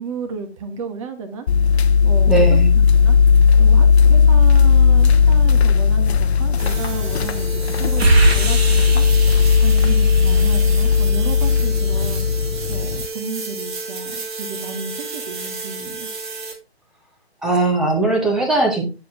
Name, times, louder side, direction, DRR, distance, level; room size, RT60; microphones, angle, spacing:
voice 1, 0.0-9.0 9.6-12.3 12.7-16.1, right 4 dB, 30° right, 6 dB, 1.3 m, -32 dB
sound 1, 1.5-13.1, left 6 dB, 75° left, 0.7 m, -15 dB
voice 2, 2.3-2.7 17.4-18.9, right 2 dB, ahead, 0 dB, 0.6 m, -19 dB
sound 2, 6.6-16.5, right 4 dB, 45° right, 2.5 m, -31 dB
sound 3, 8.0-10.7, right 3 dB, 70° right, 2.4 m, -21 dB
9.3 x 4.7 x 3.6 m, 0.29 s
hypercardioid pair, 150°, 32 cm